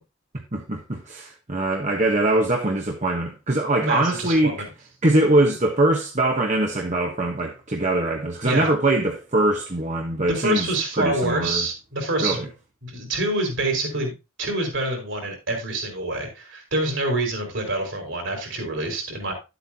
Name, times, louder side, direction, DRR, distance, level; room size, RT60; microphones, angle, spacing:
voice 1, 0.5-4.5 5.0-11.6 12.2-12.5, right 2 dB, 35° right, 1.2 m, -22 dB
voice 2, 3.8-4.7 8.4-8.7 10.3-12.5 12.8-14.1 14.4-19.3, right 2 dB, 65° right, 4.0 m, -26 dB
11.5 x 8.2 x 2.9 m
head